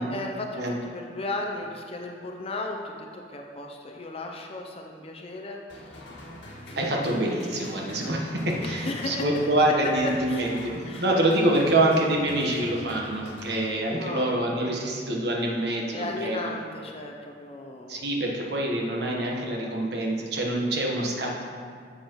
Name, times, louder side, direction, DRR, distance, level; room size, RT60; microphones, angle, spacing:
voice 1, 0.0-6.1 6.7-7.0 8.6-10.5 10.9-11.0 13.9-14.5 15.9-18.1, left 2 dB, 30° left, 1 dB, 0.6 m, -35 dB
sound 1, 5.7-14.3, left 1 dB, 75° left, 1.8 m, -43 dB
voice 2, 6.8-16.5 17.9-21.4, right 1 dB, 60° right, -1 dB, 1.2 m, -26 dB
10.5 x 7.2 x 3.0 m, 2.1 s
head